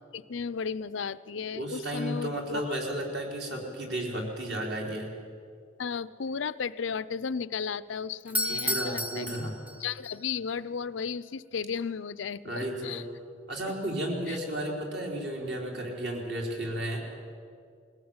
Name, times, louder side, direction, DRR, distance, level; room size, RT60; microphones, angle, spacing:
voice 1, 0.1-2.8 5.8-9.3 9.8-13.0 14.3-14.4, left 6 dB, 80° left, 16 dB, 0.5 m, -34 dB
voice 2, 1.5-5.1 8.5-9.6 12.4-13.0 13.5-17.0, right 1 dB, 60° right, 0 dB, 4.0 m, -33 dB
Doorbell, 8.2-10.1, left 1 dB, 10° right, 0.7 m, -32 dB
21.0 x 16.5 x 8.8 m, 2.3 s
head